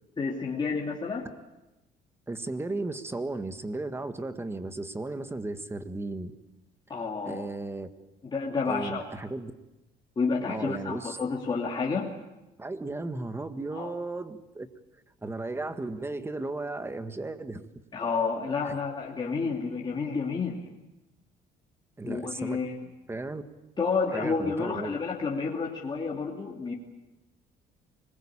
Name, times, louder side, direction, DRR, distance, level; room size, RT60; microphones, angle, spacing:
voice 1, 0.2-1.3 6.9-7.5 8.2-9.0 10.2-12.1 13.7-13.9 17.9-20.7 22.0-22.7 23.8-26.7, left 4 dB, 25° left, -2 dB, 2.9 m, -30 dB
voice 2, 2.3-6.3 7.2-7.9 8.7-9.5 10.5-11.2 12.6-14.7 15.2-17.6 18.7-18.8 22.0-22.6 23.1-23.4 24.1-25.0, right 2 dB, 15° right, 10 dB, 1.7 m, -35 dB
25.5 x 21.0 x 8.8 m, 0.99 s
cardioid pair, 110°, 17 cm